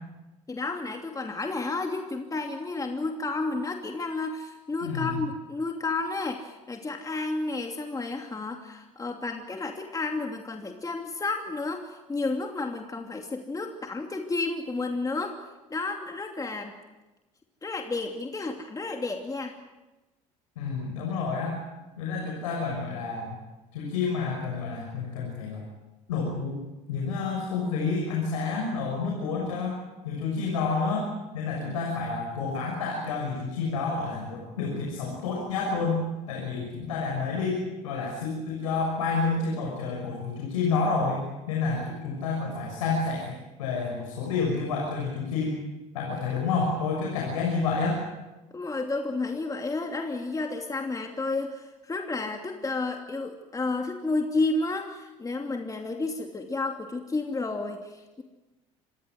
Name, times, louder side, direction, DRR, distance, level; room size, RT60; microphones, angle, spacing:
voice 1, 0.5-15.4 15.7-16.7 17.6-19.6 48.5-58.2, left 3 dB, 20° left, 3 dB, 2.8 m, -31 dB
voice 2, 4.8-5.2 20.6-21.6 22.0-23.3 23.7-25.6 26.1-26.6 26.9-29.8 30.0-31.1 31.3-36.0 36.3-45.6 45.9-48.0, left 4 dB, 85° left, 0 dB, 6.3 m, -29 dB
26.5 x 22.0 x 7.8 m, 1.1 s
hypercardioid pair, 70°, 17 cm